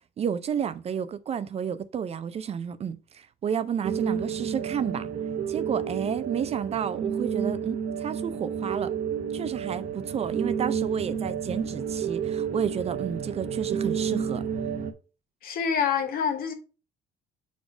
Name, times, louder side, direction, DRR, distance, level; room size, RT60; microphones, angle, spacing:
voice 1, 0.2-5.1 5.5-8.9 9.3-14.4, right 8 dB, 40° right, 0.4 m, -31 dB
sound 1, 3.8-14.9, right 7 dB, 55° right, 0.8 m, -30 dB
voice 2, 15.4-16.5, left 7 dB, 60° left, 1.2 m, -26 dB
4.7 x 4.2 x 4.7 m
cardioid pair, 110°, 17 cm